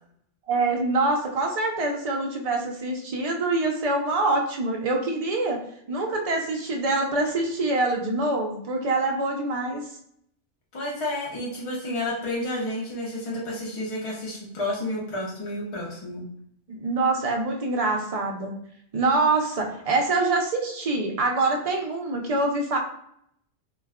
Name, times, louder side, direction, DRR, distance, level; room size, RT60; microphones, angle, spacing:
voice 1, 0.5-5.6 5.9-9.8 16.7-18.6 18.9-22.8, right 2 dB, 60° right, 1 dB, 0.4 m, -25 dB
voice 2, 10.7-16.3, left 1 dB, 40° left, -4 dB, 0.5 m, -31 dB
2.3 x 2.2 x 3.4 m, 0.71 s
omnidirectional pair, 1.2 m